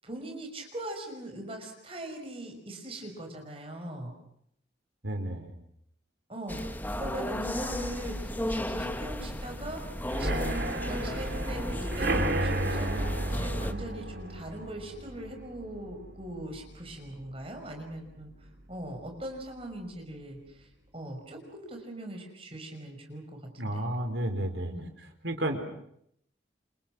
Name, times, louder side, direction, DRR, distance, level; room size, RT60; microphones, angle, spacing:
voice 1, 0.0-4.1 6.3-9.8 10.2-18.3 18.7-20.7 20.9-23.8 24.6-24.9, right 1 dB, 30° right, 3 dB, 6.0 m, -40 dB
voice 2, 5.0-5.5 23.6-24.7 25.2-25.6, right 1 dB, 80° right, 5 dB, 4.7 m, -31 dB
sound 1, 6.5-13.7, left 1 dB, 10° left, 1.2 m, -35 dB
sound 2, 10.1-17.7 18.1-18.5 18.7-18.8 19.2-19.3, right 1 dB, 60° right, 3.4 m, -33 dB
29.0 x 27.0 x 6.2 m, 0.72 s
head